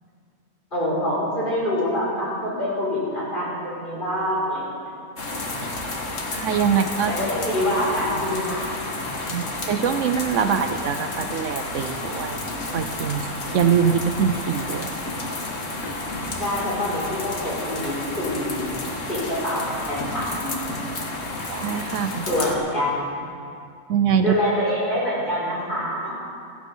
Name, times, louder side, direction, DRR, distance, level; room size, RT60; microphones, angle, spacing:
voice 1, 0.7-4.6 7.1-8.6 9.0-9.1 16.4-18.8 19.1-20.5 22.2-23.2 24.2-26.1, left 1 dB, 40° left, -7 dB, 5.5 m, -25 dB
sound 1, 5.2-22.5, left 2 dB, 70° left, 1.9 m, -31 dB
voice 2, 6.3-7.1 9.3-12.4 12.7-14.9 21.5-22.2 23.9-24.3, right 7 dB, 70° right, 8 dB, 1.0 m, -23 dB
15.5 x 15.0 x 5.4 m, 2.4 s
omnidirectional pair, 1.4 m